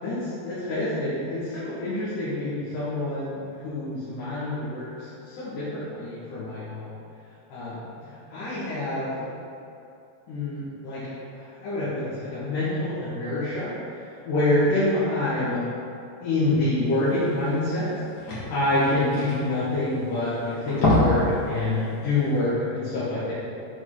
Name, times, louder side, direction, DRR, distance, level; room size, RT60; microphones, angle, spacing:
voice 1, 0.0-6.9 7.5-7.8 8.3-9.1 10.3-11.0 11.3-13.7 14.3-15.6 16.2-17.9 18.5-23.3, left 2 dB, 65° left, -12 dB, 3.0 m, -27 dB
sound 1, 17.2-17.3 17.6-17.7 17.9-20.2 20.6-21.3 21.7-21.8 22.3-22.4, left 1 dB, 40° left, 2.0 m, -25 dB
7.6 x 6.1 x 3.9 m, 2.7 s
omnidirectional pair, 4.1 m